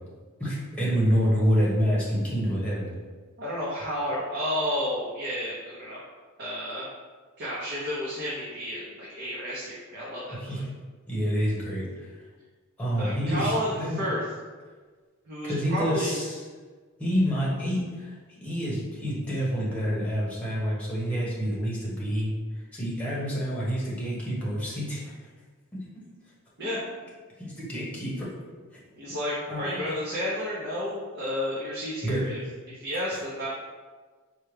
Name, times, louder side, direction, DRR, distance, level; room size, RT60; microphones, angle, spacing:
voice 1, 0.4-2.9 10.4-10.6 11.1-12.1 12.8-14.0 15.4-16.4 17.0-18.1 18.4-22.3 22.7-25.1 25.7-26.1 27.4-28.3 29.5-29.8 32.0-32.3 33.1-33.2, equal, 5° left, -7 dB, 1.0 m, -27 dB
voice 2, 3.4-6.0 6.4-6.9 7.4-10.6 13.0-14.2 15.3-16.1 26.6-26.8 29.0-32.4 32.7-33.5, equal, 50° right, -7 dB, 0.7 m, -31 dB
4.5 x 2.2 x 3.2 m, 1.4 s
head